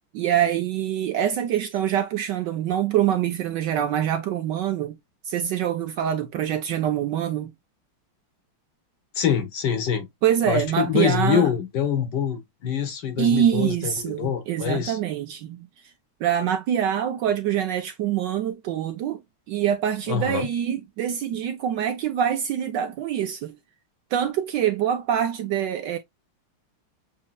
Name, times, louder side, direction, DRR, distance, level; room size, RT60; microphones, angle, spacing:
voice 1, 0.1-5.0 5.3-7.5 10.2-11.5 13.2-15.7 16.2-19.2 19.5-23.6 24.1-26.0, right 10 dB, 75° right, 1.1 m, -25 dB
voice 2, 9.1-10.1 10.4-15.0 20.1-20.5, left 8 dB, 60° left, 1.5 m, -25 dB
7.3 x 2.7 x 2.2 m
omnidirectional pair, 2.3 m